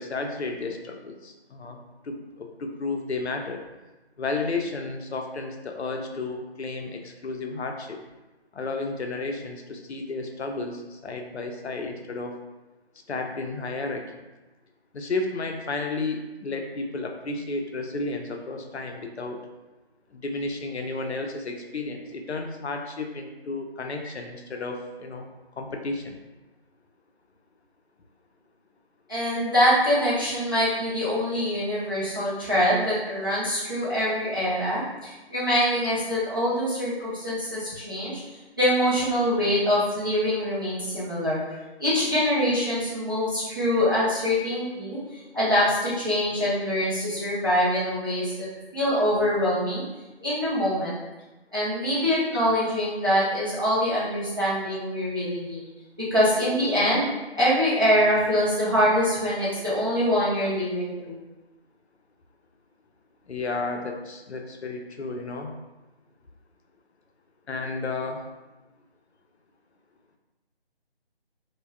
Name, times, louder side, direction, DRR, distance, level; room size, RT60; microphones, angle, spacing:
voice 1, 0.0-3.6 4.2-8.0 8.5-12.3 13.1-14.2 14.9-19.4 20.1-25.3 25.6-26.2 63.3-65.5 67.5-68.3, left 3 dB, 85° left, 4 dB, 0.5 m, -32 dB
voice 2, 29.1-38.2 38.6-41.4 41.8-48.5 48.7-49.8 50.2-51.0 51.5-55.6 56.1-57.1 57.4-61.2, equal, 20° right, -10 dB, 0.5 m, -24 dB
2.3 x 2.2 x 3.3 m, 1.1 s
figure-of-eight pair, 155°, 32 cm